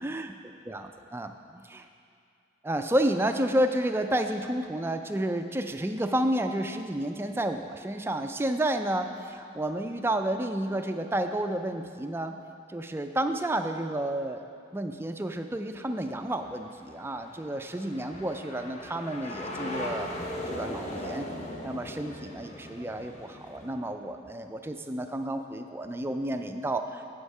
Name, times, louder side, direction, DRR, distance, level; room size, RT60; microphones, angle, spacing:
voice 1, 0.0-0.3 0.7-1.9 2.6-12.3 12.7-14.4 14.7-20.1 20.5-21.3 21.6-27.1, right 1 dB, 10° right, 6 dB, 0.3 m, -30 dB
sound 1, 16.0-23.7, left 1 dB, 35° left, 1.0 m, -39 dB
8.1 x 7.9 x 5.4 m, 2.5 s
head